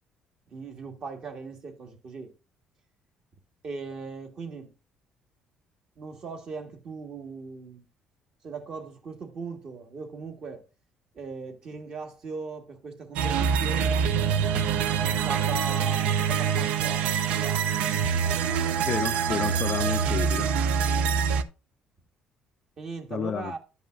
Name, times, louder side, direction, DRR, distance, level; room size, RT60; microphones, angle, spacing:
voice 1, 0.5-2.3 3.6-4.7 6.0-7.8 8.4-10.7 11.2-14.5 15.0-17.9 22.8-23.6, right 4 dB, 45° right, 1.6 m, -39 dB
sound 1, 13.2-21.4, right 7 dB, 75° right, 0.5 m, -25 dB
voice 2, 18.8-20.5 23.1-23.5, left 8 dB, 40° left, 0.3 m, -31 dB
11.5 x 5.4 x 2.5 m
cardioid pair, 125°, 2 cm